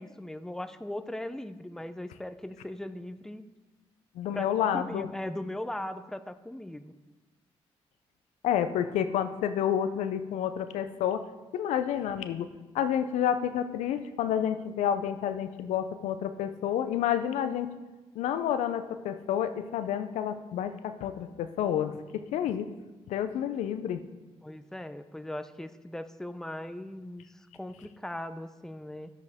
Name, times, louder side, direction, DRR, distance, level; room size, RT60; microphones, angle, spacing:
voice 1, 0.0-3.4 4.3-6.9 24.4-29.1, left 1 dB, 5° left, 10 dB, 0.6 m, -39 dB
voice 2, 4.2-5.1 8.4-11.2 11.5-12.5 12.7-17.7 18.2-22.0 22.3-22.7 23.1-24.0, left 9 dB, 85° left, 10 dB, 0.5 m, -29 dB
10.5 x 8.0 x 3.5 m, 1.2 s
supercardioid pair, 55°, 12 cm